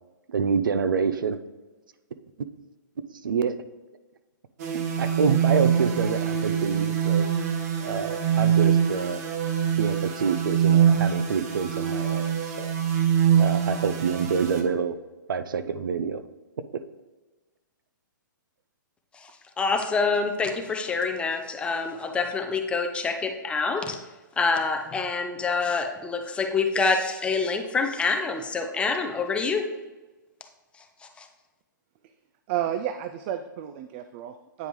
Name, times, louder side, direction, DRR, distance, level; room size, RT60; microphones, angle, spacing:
voice 1, 0.3-1.4 3.2-3.5 5.0-7.2 7.8-9.2 9.8-12.7 13.4-15.0 15.3-16.2, right 6 dB, 80° right, 11 dB, 0.6 m, -27 dB
sound 1, 4.6-14.6, right 8 dB, 50° right, 1.0 m, -24 dB
voice 2, 19.6-24.0 24.4-29.6 31.2-31.3, left 4 dB, 10° left, 4 dB, 0.6 m, -26 dB
voice 3, 32.5-34.7, right 10 dB, 35° right, 9 dB, 0.3 m, -31 dB
9.2 x 5.1 x 3.1 m, 1.2 s
hypercardioid pair, 145°, 11 cm